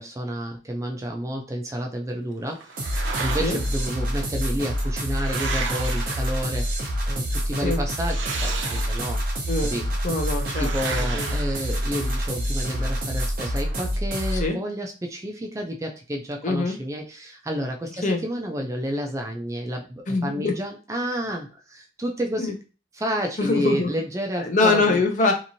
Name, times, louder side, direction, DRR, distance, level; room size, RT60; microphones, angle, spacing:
voice 1, 0.0-9.2 9.6-9.9 10.6-22.6 22.9-25.0, equal, 15° right, 2 dB, 0.4 m, -30 dB
sound 1, 2.6-3.9 4.7-6.8 7.9-9.3 10.4-12.3, right 4 dB, 75° right, 0.6 m, -34 dB
sound 2, 2.8-14.5, equal, 50° right, 0.8 m, -27 dB
voice 2, 10.0-10.7 11.1-11.3 14.3-14.6 16.4-16.7 18.0-18.2 20.1-20.5 22.4-22.5 23.4-23.9 24.4-25.3, left 3 dB, 40° left, 3 dB, 0.6 m, -23 dB
2.9 x 2.6 x 2.6 m, 0.33 s
head